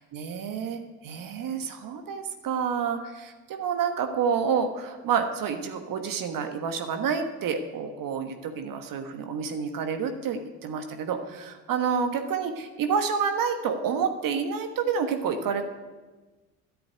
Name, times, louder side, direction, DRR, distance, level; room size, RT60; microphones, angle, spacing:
voice 1, 0.1-15.6, right 6 dB, 50° right, 6 dB, 1.4 m, -29 dB
10.5 x 7.7 x 9.3 m, 1.3 s
hypercardioid pair, 65°, 41 cm